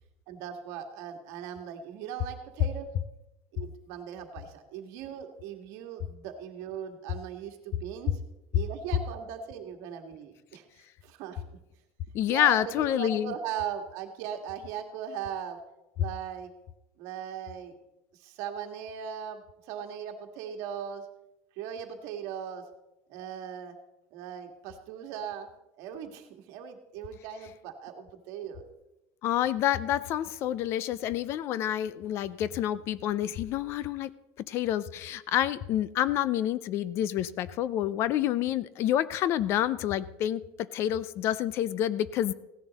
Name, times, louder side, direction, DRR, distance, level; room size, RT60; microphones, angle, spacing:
voice 1, 0.3-2.9 3.5-8.1 8.5-10.7 11.0-11.4 12.3-15.6 16.0-16.5 17.0-17.7 18.1-19.4 19.7-21.0 21.6-22.6 23.1-23.7 24.1-25.5 25.8-28.6, right 8 dB, 50° right, 5 dB, 1.7 m, -39 dB
voice 2, 12.1-13.3 29.2-34.1 34.4-42.3, left 11 dB, 40° left, 18 dB, 0.4 m, -28 dB
16.0 x 10.5 x 4.1 m, 0.93 s
cardioid pair, 165°, 7 cm